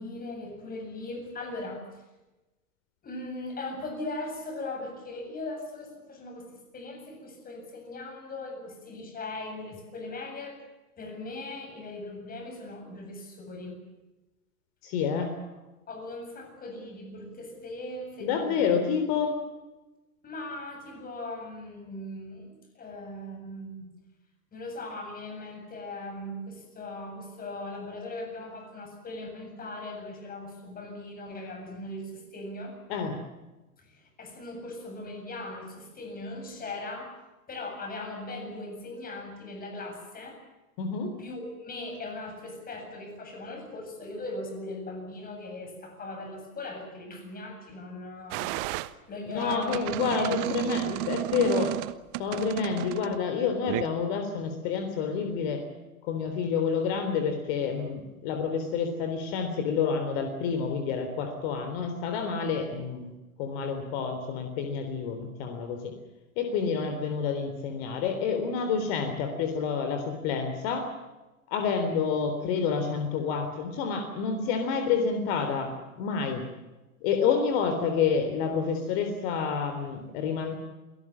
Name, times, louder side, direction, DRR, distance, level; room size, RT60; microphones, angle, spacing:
voice 1, 0.0-2.0 3.0-10.6 11.0-13.8 15.4-15.5 15.9-18.7 20.2-23.9 24.5-32.8 33.8-37.2 37.5-40.4 41.2-48.5 49.1-49.9 50.2-50.6, left 2 dB, 20° left, 4 dB, 7.9 m, -39 dB
voice 2, 14.8-15.3 18.2-19.4 32.9-33.2 40.8-41.1 49.3-51.8 52.2-55.6 56.0-63.1 63.4-65.9 66.4-70.9 71.5-76.4 77.0-80.6, left 6 dB, 45° left, 6 dB, 3.8 m, -28 dB
sound 1, 48.3-48.9 49.4-53.2 53.7-53.8, right 19 dB, 40° right, 1.2 m, -32 dB
28.5 x 18.0 x 7.4 m, 1.1 s
figure-of-eight pair, 105°, 42 cm